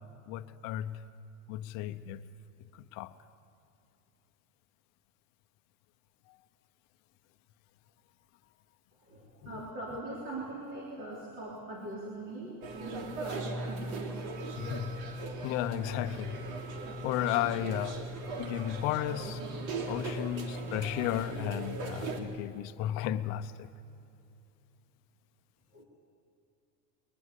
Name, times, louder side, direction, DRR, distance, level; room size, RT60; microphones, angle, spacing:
voice 1, 0.3-1.0 1.5-2.2 2.8-3.1 9.4-9.6 14.6-15.0 15.4-16.4 17.0-18.0 18.4-19.4 19.9-23.7, left 12 dB, 40° left, 0.8 m, -34 dB
voice 2, 9.0-14.1 25.7-25.9, right 1 dB, 30° right, 3.4 m, -41 dB
sound 1, 12.6-22.2, right 2 dB, 85° right, 3.2 m, -38 dB
21.5 x 21.0 x 8.3 m
cardioid pair, 180°, 40 cm